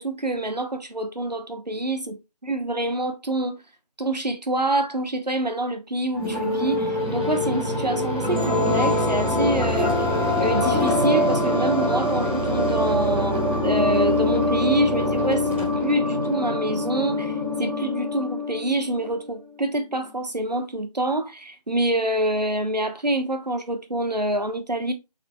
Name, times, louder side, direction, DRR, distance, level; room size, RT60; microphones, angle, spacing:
voice 1, 0.0-2.2 2.4-3.5 4.0-10.1 10.4-17.3 17.6-24.9, right 1 dB, 90° right, 1.1 m, -26 dB
sound 1, 6.1-19.1, left 1 dB, 15° right, 1.4 m, -23 dB
4.6 x 3.9 x 2.2 m
figure-of-eight pair, 170°, 21 cm